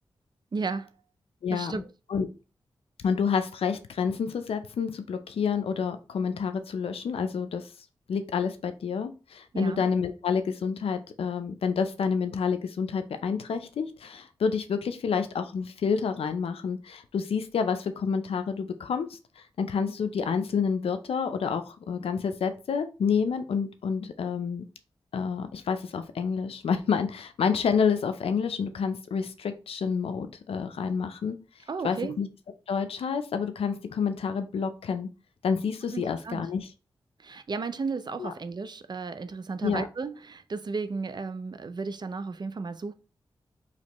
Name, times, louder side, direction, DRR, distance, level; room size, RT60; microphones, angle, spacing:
voice 1, 0.5-0.9 1.5-1.9 9.5-9.8 31.7-32.2 35.9-36.5 37.2-42.9, right 4 dB, 50° right, 0.5 m, -34 dB
voice 2, 1.4-1.8 2.1-2.3 3.0-7.7 8.1-24.6 25.1-31.4 31.8-32.3 32.7-35.1 35.4-36.7 38.2-38.3 39.6-39.8, left 6 dB, 80° left, 0.5 m, -29 dB
4.1 x 3.0 x 3.0 m
cardioid pair, 45°, 10 cm